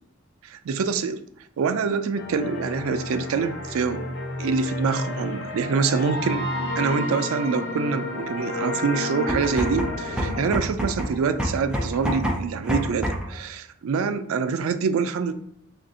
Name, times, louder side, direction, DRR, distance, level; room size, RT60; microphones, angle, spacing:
voice 1, 0.4-1.2 1.6-4.0 4.4-6.5 6.8-15.3, right 5 dB, 85° right, 9 dB, 0.4 m, -25 dB
sound 1, 2.1-10.6, left 2 dB, 75° left, 0.7 m, -31 dB
sound 2, 9.2-13.4, equal, 5° right, 0.4 m, -28 dB
3.3 x 2.5 x 3.8 m, 0.75 s
head